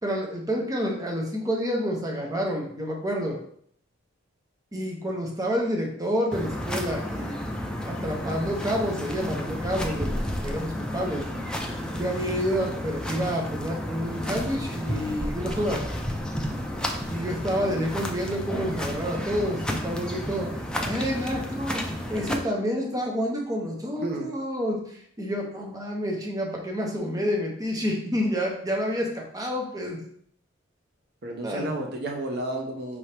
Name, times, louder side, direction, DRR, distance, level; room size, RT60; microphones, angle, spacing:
voice 1, 0.0-3.4 4.7-7.4 7.9-11.3 11.9-15.8 17.1-20.5 20.9-21.8 22.1-30.0 31.4-31.7, equal, 20° right, 0 dB, 0.7 m, -29 dB
sound 1, 6.3-22.3, equal, 5° left, 0.4 m, -32 dB
voice 2, 31.2-33.0, right 1 dB, 55° right, 1 dB, 0.6 m, -31 dB
4.7 x 2.8 x 3.3 m, 0.64 s
head